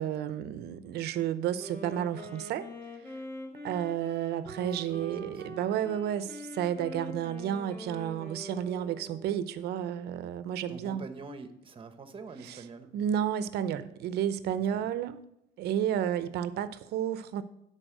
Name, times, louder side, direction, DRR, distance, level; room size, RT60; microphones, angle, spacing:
voice 1, 0.0-2.7 3.6-11.0 12.5-12.6 12.9-15.2 15.6-17.4, right 10 dB, 75° right, 13 dB, 0.7 m, -31 dB
Wind instrument woodwind instrument, 1.6-9.6, equal, 15° left, 2.1 m, -43 dB
voice 2, 4.6-5.9 10.7-12.9 14.7-14.9, right 4 dB, 30° right, 9 dB, 1.0 m, -46 dB
11.0 x 4.2 x 6.6 m, 0.79 s
cardioid pair, 110°, 17 cm